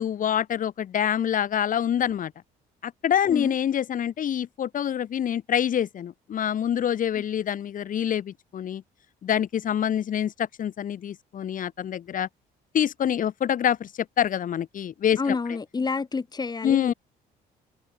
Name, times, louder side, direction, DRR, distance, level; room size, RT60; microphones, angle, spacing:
voice 1, 0.0-2.3 2.8-8.8 9.2-12.3 12.7-13.9 14.2-15.4 16.6-16.9, left 9 dB, 50° left, 5.4 m, -26 dB
voice 2, 15.2-16.9, left 4 dB, 25° left, 3.1 m, -28 dB
cardioid pair, 110°, 17 cm